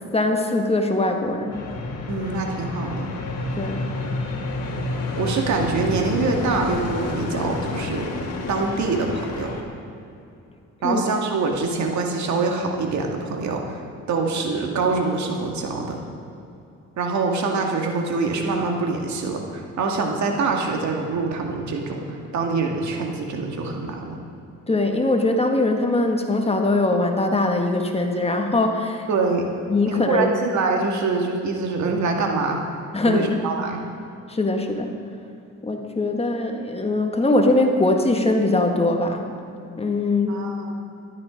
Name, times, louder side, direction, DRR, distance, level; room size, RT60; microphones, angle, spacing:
voice 1, 0.1-1.7 3.6-3.9 10.8-11.0 24.7-29.1 29.7-30.3 32.9-33.3 34.3-35.0 35.6-39.3 39.8-40.4, left 2 dB, 20° left, 4 dB, 1.6 m, -21 dB
sound 1, 1.5-9.6, left 2 dB, 55° left, 2.2 m, -29 dB
voice 2, 2.1-3.1 5.1-8.1 8.5-9.5 10.8-13.8 14.1-16.0 17.0-24.2 29.1-29.5 29.9-32.6 33.1-33.8 40.3-40.8, right 3 dB, 70° right, 2 dB, 2.1 m, -25 dB
13.5 x 12.0 x 5.2 m, 2.7 s
cardioid pair, 90°, 30 cm